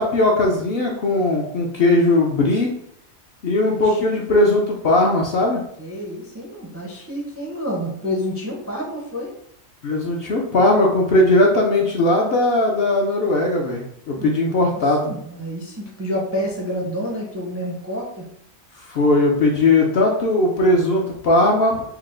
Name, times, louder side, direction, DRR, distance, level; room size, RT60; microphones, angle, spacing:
voice 1, 0.0-2.7 3.4-5.6 9.8-15.1 18.9-21.8, left 2 dB, 60° left, 0 dB, 0.7 m, -18 dB
voice 2, 5.8-9.3 14.1-18.2, equal, 20° right, -3 dB, 0.4 m, -29 dB
4.4 x 2.0 x 3.7 m, 0.70 s
omnidirectional pair, 1.4 m